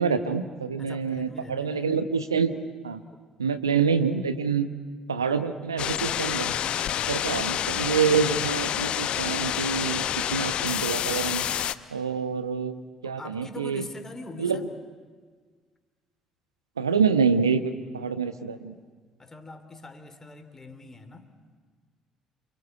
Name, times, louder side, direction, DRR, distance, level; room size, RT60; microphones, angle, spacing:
voice 1, 0.0-2.6 2.8-3.0 3.4-4.7 5.1-6.6 7.1-11.5 11.9-13.8 14.4-14.6 16.8-18.7, right 6 dB, 80° right, 10 dB, 1.0 m, -26 dB
voice 2, 0.8-1.9 13.0-14.7 19.2-21.3, left 2 dB, 20° left, 7 dB, 3.2 m, -43 dB
sound 1, 5.8-11.7, left 10 dB, 50° left, 0.8 m, -28 dB
29.0 x 24.0 x 8.3 m, 1.5 s
figure-of-eight pair, 50°, 2 cm